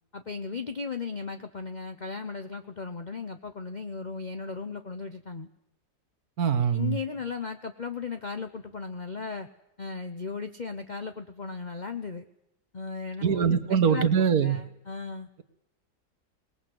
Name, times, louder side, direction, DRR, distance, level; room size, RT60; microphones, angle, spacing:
voice 1, 0.1-5.5 6.7-9.5 9.8-12.3 12.7-14.1 14.4-15.3, left 5 dB, 35° left, 8 dB, 0.9 m, -36 dB
voice 2, 6.4-7.0 13.2-14.6, right 7 dB, 70° right, 9 dB, 1.8 m, -23 dB
23.0 x 20.0 x 7.9 m, 0.82 s
omnidirectional pair, 1.7 m